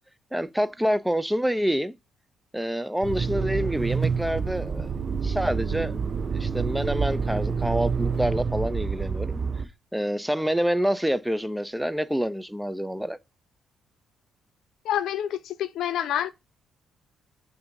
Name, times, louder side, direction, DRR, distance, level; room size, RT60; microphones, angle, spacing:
voice 1, 0.3-1.9 2.5-6.0 6.3-9.4 9.9-13.2, equal, 5° right, 0.4 m, -27 dB
Motor vehicle (road), 3.0-9.7, right 5 dB, 40° right, 0.6 m, -28 dB
voice 2, 14.8-16.3, left 10 dB, 80° left, 0.5 m, -27 dB
7.0 x 2.6 x 5.2 m
cardioid pair, 90°, 0 cm